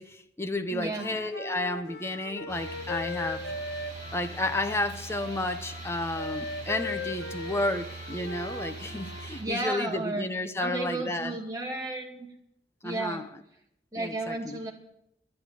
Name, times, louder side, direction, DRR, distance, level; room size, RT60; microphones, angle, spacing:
voice 1, 0.0-3.5 4.1-11.4 12.8-13.3 13.9-14.6, left 2 dB, 15° left, 0.8 m, -32 dB
voice 2, 0.7-1.1 9.4-10.3 10.6-12.3 12.8-13.3 13.9-14.7, right 2 dB, 20° right, 2.2 m, -33 dB
Wind instrument woodwind instrument, 0.8-9.3, left 2 dB, 75° left, 1.3 m, -39 dB
sound 1, 2.5-9.4, right 3 dB, 40° right, 6.4 m, -42 dB
12.0 x 9.9 x 9.0 m
head